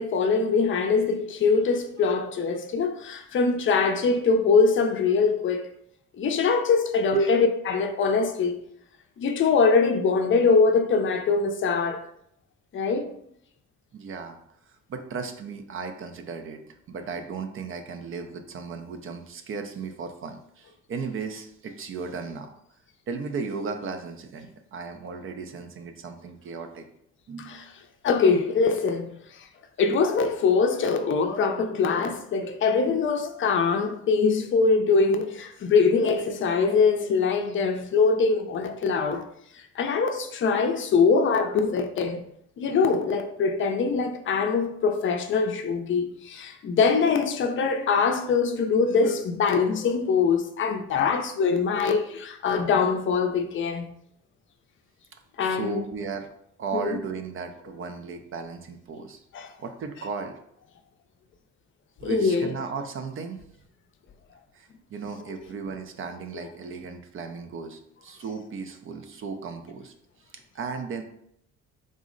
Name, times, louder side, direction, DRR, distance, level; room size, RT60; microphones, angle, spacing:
voice 1, 0.0-5.7 6.2-8.6 9.2-12.1 12.7-13.1 27.4-27.6 28.0-29.5 29.8-39.3 39.8-42.2 42.6-53.9 55.4-55.8 56.7-57.0 59.3-59.5 62.0-62.5, left 5 dB, 45° left, 0.5 m, -23 dB
voice 2, 13.9-14.4 14.7-16.6 16.9-22.5 23.1-26.9 27.3-27.7 55.4-56.3 56.6-59.2 59.6-60.4 62.0-63.4 64.5-69.9 70.5-71.0, right 5 dB, 45° right, 0.4 m, -35 dB
3.7 x 2.0 x 3.7 m
cardioid pair, 100°, 29 cm